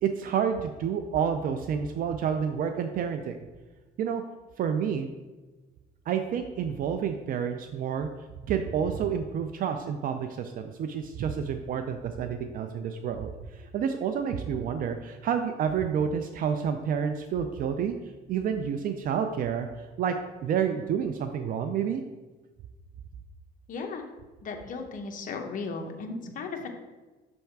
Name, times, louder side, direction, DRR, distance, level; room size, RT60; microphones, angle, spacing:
voice 1, 0.0-3.4 4.0-4.2 4.6-5.1 6.1-8.1 8.5-17.9 18.3-19.7 20.0-20.1 20.4-22.0, right 7 dB, 55° right, 7 dB, 0.4 m, -29 dB
voice 2, 23.7-24.0 24.4-26.7, left 4 dB, 50° left, 4 dB, 0.9 m, -36 dB
6.3 x 3.4 x 4.6 m, 1.2 s
cardioid pair, 110°, 17 cm